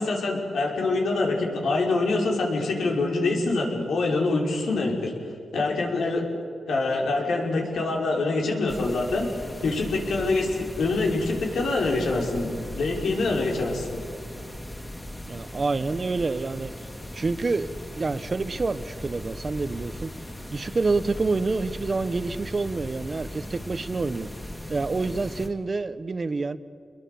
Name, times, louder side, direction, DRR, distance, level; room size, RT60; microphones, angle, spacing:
voice 1, 0.0-5.1 5.5-6.2 6.7-9.3 9.6-13.9, left 3 dB, 85° left, 0 dB, 5.7 m, -25 dB
sound 1, 8.7-25.5, left 1 dB, 15° left, 2.8 m, -38 dB
voice 2, 15.3-16.7 17.1-17.7 18.0-20.1 20.5-24.3 24.7-26.6, right 3 dB, 40° right, 14 dB, 1.0 m, -27 dB
29.0 x 22.0 x 7.1 m, 2.4 s
cardioid pair, 95°, 0 cm